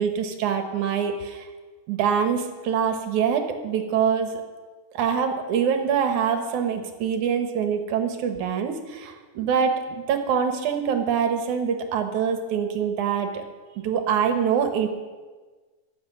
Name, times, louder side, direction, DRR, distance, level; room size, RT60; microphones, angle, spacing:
voice 1, 0.0-1.5 1.9-4.3 4.9-13.4 13.8-14.9, right 7 dB, 65° right, 6 dB, 2.2 m, -24 dB
23.5 x 8.4 x 6.1 m, 1.4 s
omnidirectional pair, 4.5 m